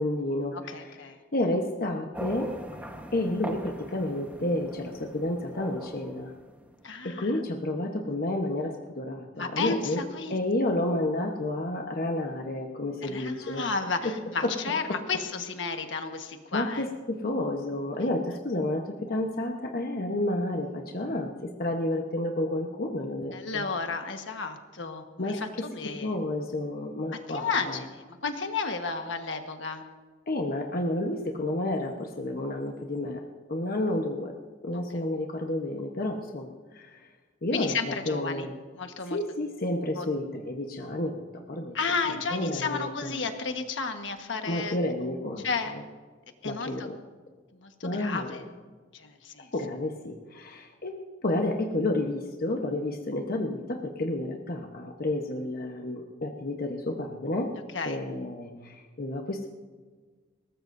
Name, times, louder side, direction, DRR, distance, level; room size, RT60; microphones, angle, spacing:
voice 1, 0.0-0.8 1.3-2.5 3.1-6.3 7.0-10.0 10.3-13.7 14.0-14.1 14.4-14.5 16.5-23.6 25.2-25.4 26.0-27.8 30.3-33.2 33.5-34.3 34.6-36.9 37.4-38.5 39.1-41.2 41.5-41.8 42.3-43.2 44.5-45.5 45.7-45.8 46.4-47.0 47.8-48.3 49.5-50.9 51.2-57.5 57.8-59.5, left 1 dB, 50° left, 2 dB, 1.1 m, -30 dB
voice 2, 0.5-1.2 6.8-7.3 9.3-10.4 13.0-16.8 17.9-18.1 23.3-26.1 27.3-29.8 37.5-38.5 38.7-39.2 40.0-40.1 41.7-44.8 45.4-45.7 46.4-46.9 47.6-48.4 48.9-49.5 57.7-58.0, left 4 dB, 70° left, 6 dB, 1.4 m, -32 dB
sound 1, 2.1-7.0, right 1 dB, 10° right, 1.2 m, -40 dB
21.5 x 18.5 x 2.7 m, 1.5 s
head